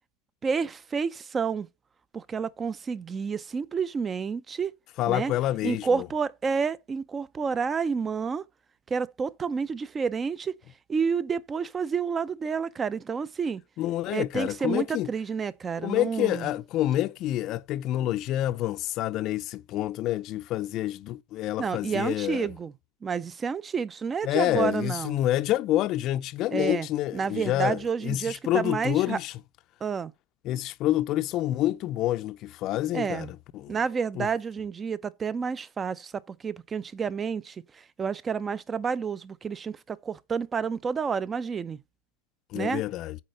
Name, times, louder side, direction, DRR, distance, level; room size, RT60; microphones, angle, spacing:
voice 1, 0.4-1.7 2.1-4.7 5.1-5.3 5.6-8.5 8.9-10.6 10.9-13.6 14.1-16.5 21.6-22.7 23.0-25.2 26.5-26.9 27.1-29.2 29.8-30.1 32.9-33.3 33.7-41.8 42.5-42.8, right 6 dB, 20° right, 0.6 m, -29 dB
voice 2, 5.0-6.1 13.8-15.1 15.8-22.5 24.2-29.3 30.4-33.3 33.5-33.8 34.2-34.3 42.5-43.2, left 14 dB, 45° left, 0.6 m, -28 dB
8.7 x 4.2 x 6.7 m
supercardioid pair, 120°, 0 cm